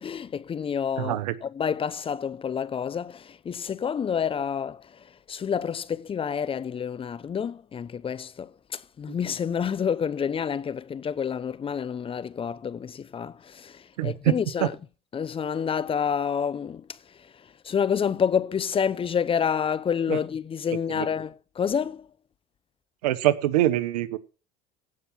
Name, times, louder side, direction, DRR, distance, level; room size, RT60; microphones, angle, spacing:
voice 1, 0.0-1.2 1.6-14.7 15.1-22.1, left 7 dB, 30° left, 0.8 m, -29 dB
voice 2, 1.0-1.4 9.1-9.2 14.0-14.3 14.6-14.7 20.1-20.2 20.9-21.1 23.0-24.2, right 14 dB, 85° right, 1.0 m, -24 dB
16.0 x 6.2 x 7.2 m
supercardioid pair, 90°, 20 cm